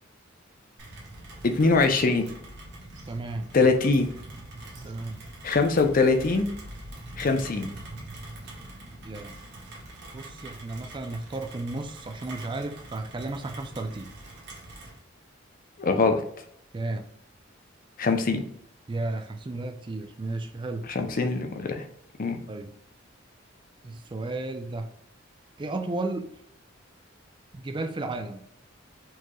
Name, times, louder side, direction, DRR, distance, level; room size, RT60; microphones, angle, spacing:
Rain, 0.8-15.0, right 1 dB, 60° right, 1.1 m, -44 dB
voice 1, 1.4-2.3 3.5-4.1 5.4-6.5 7.2-7.7 15.8-16.2 18.0-18.4 20.9-21.8 22.2-22.4, left 3 dB, 45° left, 6 dB, 0.5 m, -22 dB
voice 2, 3.1-3.6 4.8-5.2 9.0-9.4 10.1-14.1 16.7-17.1 18.9-20.9 22.5-22.7 23.8-24.9 25.6-26.3 27.5-28.4, right 2 dB, 25° right, 6 dB, 0.4 m, -33 dB
4.5 x 3.0 x 2.3 m, 0.69 s
head